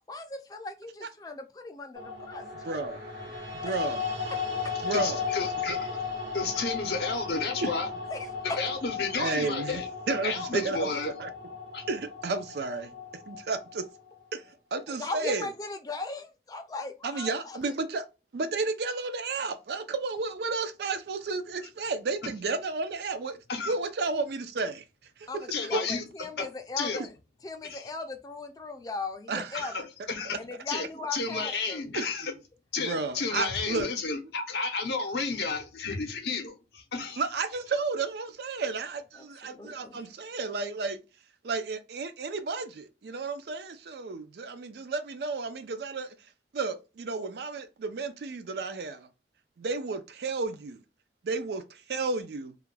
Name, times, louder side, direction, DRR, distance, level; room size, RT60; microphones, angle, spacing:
voice 1, 0.1-2.9 3.6-3.8 6.5-6.7 8.1-8.6 14.9-17.6 25.3-27.1 27.4-29.7 30.3-31.8 39.2-40.1, left 3 dB, 20° left, 0.4 m, -38 dB
sound 1, 2.0-14.2, left 5 dB, 90° right, 1.1 m, -36 dB
voice 2, 2.6-3.0 3.5-4.0 4.8-5.2 7.6-7.7 9.2-11.3 11.9-12.9 13.3-13.9 14.3-14.4 14.7-15.5 17.0-18.0 18.3-23.4 23.7-24.8 25.2-26.0 29.3-29.7 32.0-32.3 32.8-33.9 37.2-41.0 41.4-46.1 46.5-49.1 49.6-50.8 51.2-52.6, right 3 dB, 65° right, 0.4 m, -32 dB
voice 3, 4.9-5.8 6.3-7.9 8.4-9.9 10.2-11.1 11.7-11.8 22.2-22.3 23.5-23.7 25.5-26.0 26.4-26.5 26.8-27.0 27.6-27.8 29.5-30.4 30.7-30.9 31.1-32.3 32.7-37.2, left 4 dB, 65° left, 0.6 m, -32 dB
2.4 x 2.2 x 3.1 m
head